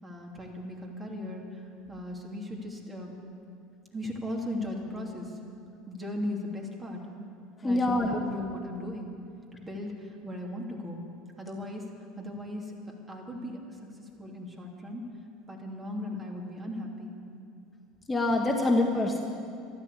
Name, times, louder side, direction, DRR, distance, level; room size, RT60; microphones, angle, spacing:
voice 1, 0.0-1.6 1.9-3.1 3.9-5.4 5.9-7.0 7.6-9.1 9.5-11.0 11.4-11.8 12.2-12.7 13.1-15.0 15.5-17.1, left 1 dB, 20° right, 0 dB, 3.1 m, -37 dB
voice 2, 7.6-8.2 18.1-19.2, left 2 dB, 20° left, 2 dB, 1.4 m, -25 dB
13.5 x 12.0 x 8.4 m, 2.5 s
hypercardioid pair, 85°, 0 cm